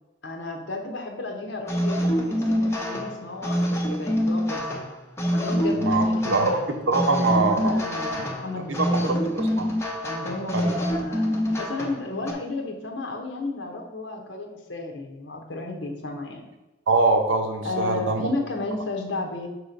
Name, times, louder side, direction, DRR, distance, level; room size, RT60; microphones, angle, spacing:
voice 1, 0.2-4.9 5.3-6.8 7.2-9.3 10.0-16.5 17.6-19.5, left 2 dB, 70° left, 1 dB, 1.0 m, -33 dB
sound 1, 1.7-12.3, equal, 15° left, 0.7 m, -26 dB
voice 2, 5.8-6.6 6.9-7.7 8.7-9.7 10.5-10.8 16.9-18.2, right 3 dB, 80° right, 5 dB, 0.8 m, -23 dB
6.2 x 3.1 x 5.1 m, 1.1 s
head